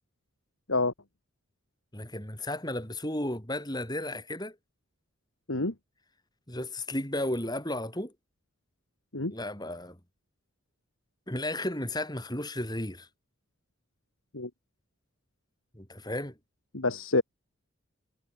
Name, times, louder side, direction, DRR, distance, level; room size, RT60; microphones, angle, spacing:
voice 1, 1.9-4.6 6.5-8.1 9.3-10.0 11.3-13.1 15.7-16.3, left 1 dB, 20° left, 5.5 m, -34 dB
voice 2, 16.7-17.2, left 2 dB, 75° left, 2.2 m, -27 dB
head